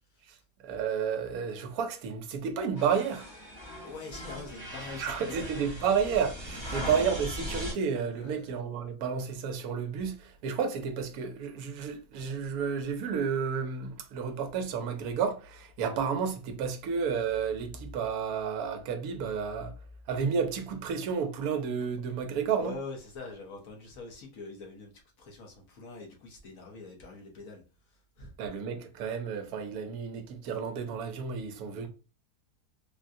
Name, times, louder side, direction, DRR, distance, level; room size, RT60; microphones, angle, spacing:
voice 1, 0.6-3.3 5.0-19.7 20.1-22.8 28.4-31.9, right 6 dB, 70° right, 1.1 m, -31 dB
sound 1, 2.8-7.7, equal, 20° left, 0.8 m, -39 dB
voice 2, 3.8-5.7 6.7-6.8 8.1-8.5 22.5-24.9 25.2-27.6 28.2-28.5, left 3 dB, 60° left, 1.2 m, -44 dB
3.7 x 2.2 x 2.6 m
omnidirectional pair, 1.8 m